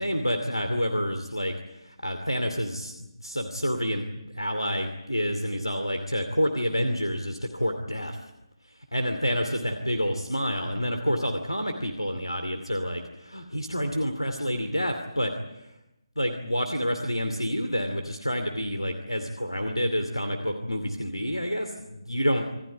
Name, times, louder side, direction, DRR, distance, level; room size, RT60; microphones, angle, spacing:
voice 1, 0.0-8.3 8.6-15.8 16.2-22.5, equal, 90° left, 7 dB, 2.6 m, -28 dB
27.0 x 13.5 x 9.8 m, 0.92 s
figure-of-eight pair, 150°, 3 cm